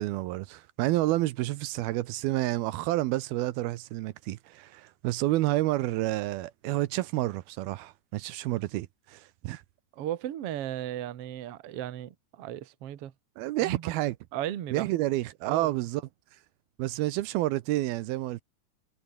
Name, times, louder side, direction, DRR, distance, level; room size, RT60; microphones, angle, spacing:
voice 1, 0.0-9.6 13.4-14.1 14.7-16.0 16.8-18.4, right 17 dB, 80° right, 2.6 m, -29 dB
voice 2, 9.9-13.1 13.6-13.9 14.3-14.9 15.5-15.8, right 12 dB, 55° right, 1.7 m, -36 dB
omnidirectional pair, 4.5 m